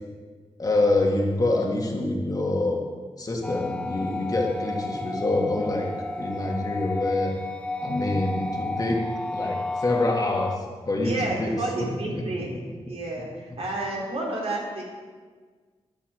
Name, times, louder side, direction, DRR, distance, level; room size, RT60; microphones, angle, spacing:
voice 1, 0.6-2.8 3.2-5.9 6.2-7.3 7.8-9.1 9.3-12.2, left 2 dB, 35° left, 0 dB, 1.9 m, -26 dB
sound 1, 3.4-10.6, left 2 dB, 10° left, 0.4 m, -32 dB
voice 2, 11.0-12.5 12.8-14.8, right 2 dB, 60° right, -3 dB, 3.5 m, -30 dB
13.5 x 10.0 x 4.9 m, 1.5 s
wide cardioid pair, 130°, 11 cm